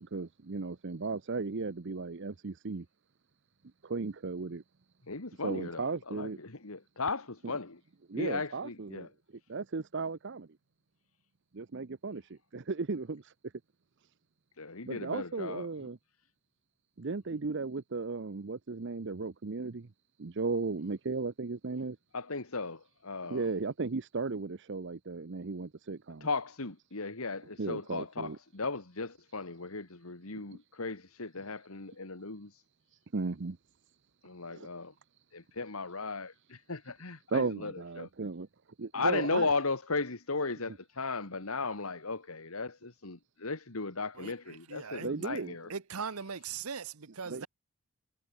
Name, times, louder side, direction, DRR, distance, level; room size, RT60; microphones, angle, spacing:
voice 1, 0.0-2.8 3.8-4.6 5.4-6.4 7.4-7.5 8.1-9.1 9.5-10.5 11.5-13.3 14.9-16.0 17.0-19.9 20.2-22.0 23.3-26.3 27.6-28.4 33.1-33.6 34.5-34.7 37.3-38.5 38.8-39.5 45.0-45.6 47.3-47.5, right 4 dB, 55° right, 0.7 m, -35 dB
voice 2, 5.1-7.8 8.2-9.1 14.6-15.7 22.1-23.5 26.2-32.6 34.2-34.9 35.3-38.1 38.9-45.7, left 3 dB, 70° left, 2.0 m, -36 dB
voice 3, 44.2-45.1 45.7-47.5, right 6 dB, 80° right, 1.1 m, -40 dB
head